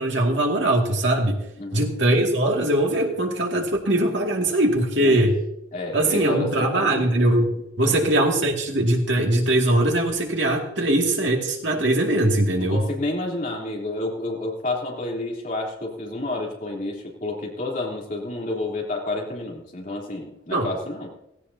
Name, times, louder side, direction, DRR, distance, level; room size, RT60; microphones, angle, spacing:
voice 1, 0.0-1.4 1.7-5.4 5.9-12.8 20.5-20.7, right 1 dB, 60° right, 0 dB, 2.3 m, -21 dB
voice 2, 1.6-1.9 4.9-5.3 5.7-7.1 7.8-8.0 12.6-21.1, left 2 dB, 40° left, -2 dB, 3.3 m, -30 dB
17.0 x 17.0 x 2.8 m, 0.85 s
head